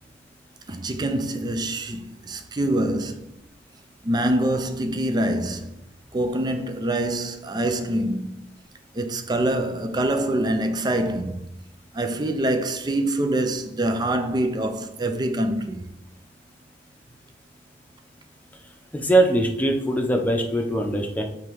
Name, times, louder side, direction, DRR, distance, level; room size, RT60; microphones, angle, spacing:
voice 1, 0.7-3.3 4.0-5.8 6.1-8.5 8.9-11.5 11.9-15.8, right 1 dB, 25° right, 0.4 m, -25 dB
voice 2, 18.9-21.2, right 1 dB, 10° left, 0.8 m, -21 dB
7.1 x 3.4 x 4.7 m
head